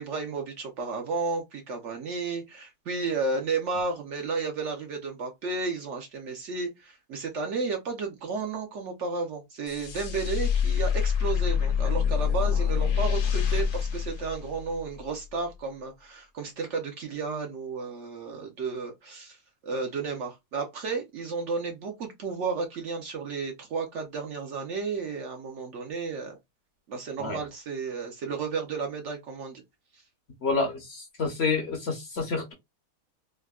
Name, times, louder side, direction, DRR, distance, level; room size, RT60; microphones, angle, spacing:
voice 1, 0.0-19.4 19.6-26.4 26.9-29.6, right 4 dB, 60° right, 0.9 m, -32 dB
sound 1, 9.7-15.0, left 7 dB, 75° left, 1.2 m, -26 dB
voice 2, 30.4-32.5, left 4 dB, 55° left, 0.8 m, -28 dB
3.5 x 2.1 x 2.2 m
omnidirectional pair, 1.6 m